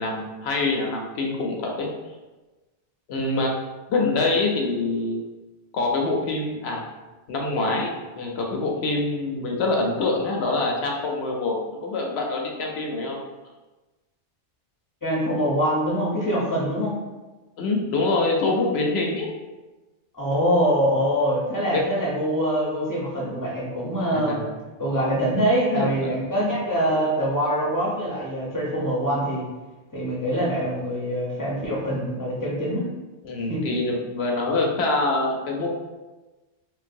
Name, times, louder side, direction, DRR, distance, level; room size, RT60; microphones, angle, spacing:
voice 1, 0.0-1.9 3.1-3.5 3.9-5.2 5.7-6.8 7.3-13.2 17.6-19.3 21.7-22.0 24.1-24.5 25.7-26.1 26.9-27.0 33.2-35.7, left 3 dB, 70° left, 0 dB, 0.8 m, -25 dB
voice 2, 15.0-17.0 20.1-24.4 24.8-29.4 29.9-32.9 33.5-33.6, equal, 20° left, -7 dB, 0.6 m, -24 dB
3.8 x 2.2 x 2.5 m, 1.2 s
omnidirectional pair, 1.2 m